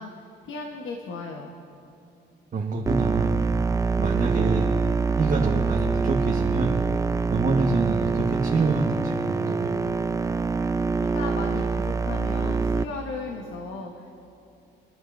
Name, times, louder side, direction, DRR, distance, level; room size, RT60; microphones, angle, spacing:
voice 1, 0.0-1.5 10.9-14.2, left 3 dB, 80° left, 2 dB, 1.2 m, -36 dB
voice 2, 2.5-3.3 4.0-4.7 5.2-6.7 7.3-9.7, right 3 dB, 40° right, -2 dB, 1.3 m, -26 dB
sound 1, 2.9-12.8, right 4 dB, 15° right, 0.4 m, -25 dB
27.5 x 11.0 x 2.6 m, 2.7 s
cardioid pair, 90°, 20 cm